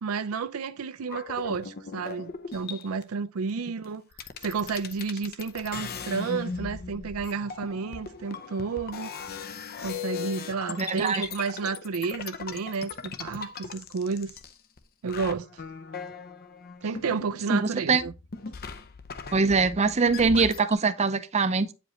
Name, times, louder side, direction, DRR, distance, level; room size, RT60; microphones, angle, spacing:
voice 1, 0.0-4.0 4.4-9.1 9.8-14.3 15.0-15.6 16.8-18.1, right 5 dB, 85° right, 0.5 m, -31 dB
sound 1, 1.0-3.0 3.8-3.9 4.1-14.8 15.1-17.7 18.0-20.7, left 5 dB, 45° left, 0.6 m, -39 dB
voice 2, 10.8-11.3 17.5-18.0 19.3-21.7, right 4 dB, 30° right, 0.6 m, -23 dB
8.9 x 5.0 x 3.1 m
head